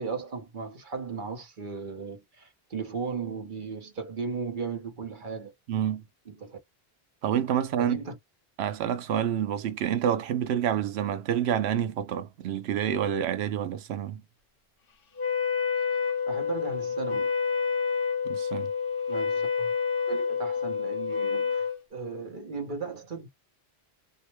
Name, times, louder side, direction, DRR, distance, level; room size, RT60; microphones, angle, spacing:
voice 1, 0.0-5.5 6.3-6.6 7.8-8.1 16.3-17.3 19.1-19.7 20.1-23.3, right 5 dB, 50° right, 1.0 m, -36 dB
voice 2, 5.7-6.0 7.2-8.0 8.6-14.2 18.3-18.7, right 9 dB, 85° right, 0.8 m, -28 dB
Wind instrument woodwind instrument, 15.2-21.8, left 6 dB, 60° left, 0.8 m, -28 dB
2.7 x 2.1 x 2.9 m
omnidirectional pair, 1.1 m